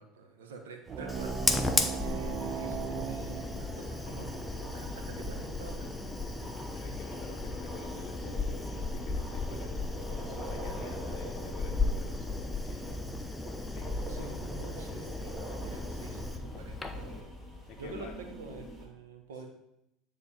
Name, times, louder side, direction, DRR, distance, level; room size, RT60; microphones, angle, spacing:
voice 1, 0.0-5.9 14.1-17.3 17.8-19.5, right 3 dB, 90° right, 3 dB, 1.1 m, -47 dB
sound 1, 0.9-18.9, right 1 dB, 10° right, 2.0 m, -44 dB
sound 2, 0.9-6.0, right 7 dB, 35° right, 0.6 m, -39 dB
Fire, 1.1-17.2, left 2 dB, 15° left, 0.7 m, -35 dB
voice 2, 6.3-9.8 10.2-14.4 17.7-18.1 19.3-19.4, left 6 dB, 50° left, 1 dB, 0.6 m, -49 dB
9.0 x 3.5 x 4.3 m, 0.82 s
hypercardioid pair, 85°, 0 cm